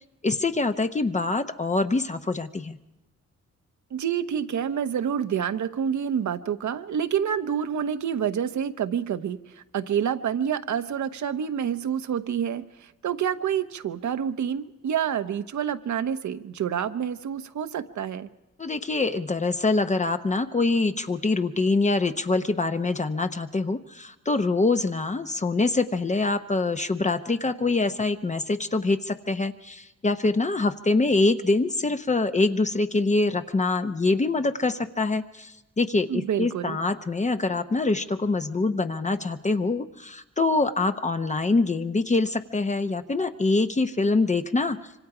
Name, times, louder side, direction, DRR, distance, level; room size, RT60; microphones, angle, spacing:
voice 1, 0.2-2.8 18.6-44.8, left 3 dB, 25° left, 8 dB, 0.8 m, -25 dB
voice 2, 3.9-18.3 36.1-36.8, right 8 dB, 80° right, 9 dB, 1.0 m, -28 dB
25.5 x 25.0 x 4.9 m, 1.0 s
wide cardioid pair, 135°, 29 cm